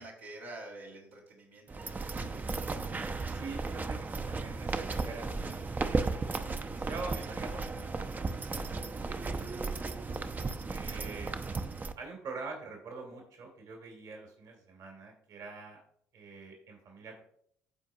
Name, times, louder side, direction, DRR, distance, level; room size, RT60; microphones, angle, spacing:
voice 1, 0.0-2.5 9.0-9.4, right 2 dB, 90° right, -6 dB, 2.2 m, -48 dB
sound 1, 1.7-11.9, right 3 dB, 25° right, 0.6 m, -35 dB
voice 2, 3.3-8.5 8.9-9.4 10.7-11.3 12.0-15.8 16.1-17.2, right 4 dB, 60° right, 2 dB, 2.1 m, -45 dB
13.5 x 4.5 x 2.7 m, 0.65 s
hypercardioid pair, 55°, 7 cm